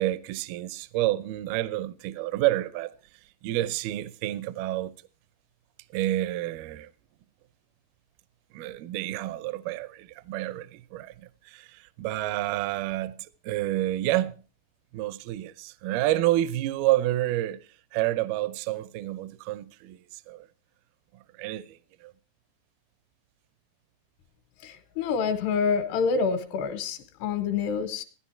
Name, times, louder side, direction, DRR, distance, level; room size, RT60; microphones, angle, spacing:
voice 1, 0.0-2.9 3.4-5.0 5.9-6.9 8.5-14.4 14.9-20.5 21.1-22.1, right 15 dB, 80° right, 2.3 m, -29 dB
voice 2, 24.6-28.0, left 5 dB, 80° left, 3.0 m, -27 dB
15.5 x 10.0 x 4.4 m
omnidirectional pair, 4.9 m